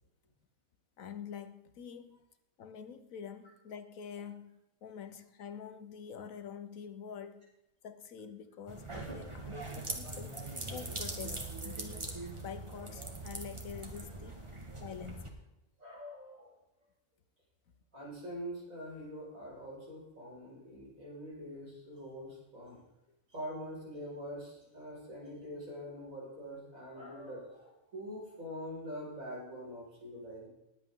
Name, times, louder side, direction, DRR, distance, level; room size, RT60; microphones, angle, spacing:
voice 1, 1.0-2.2 2.6-7.5 7.8-10.4 10.7-12.1 12.4-14.4 14.8-15.4, left 7 dB, 80° left, 1.4 m, -46 dB
sound 1, 8.7-15.3, right 2 dB, 20° right, 1.7 m, -42 dB
voice 2, 15.8-16.5 17.9-22.8 23.3-30.5, equal, 80° right, 5.8 m, -44 dB
20.5 x 8.4 x 3.8 m
omnidirectional pair, 1.4 m